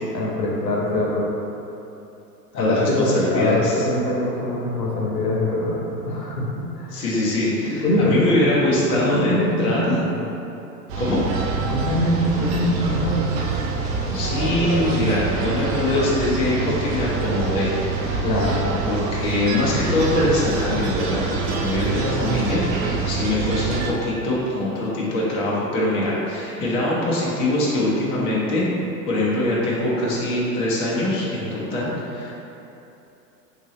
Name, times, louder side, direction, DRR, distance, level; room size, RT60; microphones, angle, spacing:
voice 1, 0.1-1.3 2.5-5.8 6.0-7.0 7.6-8.5 8.9-10.2 11.7-13.3 18.2-18.7, left 1 dB, 85° left, -3 dB, 0.9 m, -23 dB
voice 2, 2.5-3.9 6.9-10.0 11.0-11.3 14.1-18.6 18.9-22.6 23.0-28.7 29.1-32.3, left 1 dB, 15° left, -6 dB, 0.3 m, -23 dB
sound 1, 10.9-23.9, right 4 dB, 40° right, 0.5 m, -25 dB
3.0 x 2.7 x 3.7 m, 2.9 s
hypercardioid pair, 95°, 48 cm